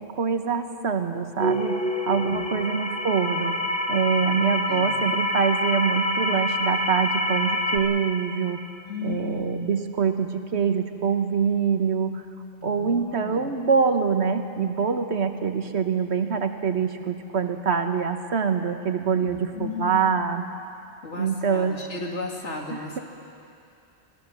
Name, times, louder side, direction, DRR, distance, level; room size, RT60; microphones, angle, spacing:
voice 1, 0.0-1.8 2.1-3.6 3.9-8.6 9.0-12.2 12.6-20.4 21.2-21.8 22.7-23.0, right 6 dB, 70° right, 7 dB, 1.4 m, -25 dB
sound 1, 1.4-7.8, left 1 dB, 5° left, 1.4 m, -26 dB
voice 2, 2.2-2.6 3.9-4.9 8.9-9.4 12.6-13.5 19.2-20.1 21.0-23.0, left 4 dB, 80° left, -1 dB, 2.7 m, -36 dB
24.0 x 17.0 x 6.9 m, 2.6 s
omnidirectional pair, 1.2 m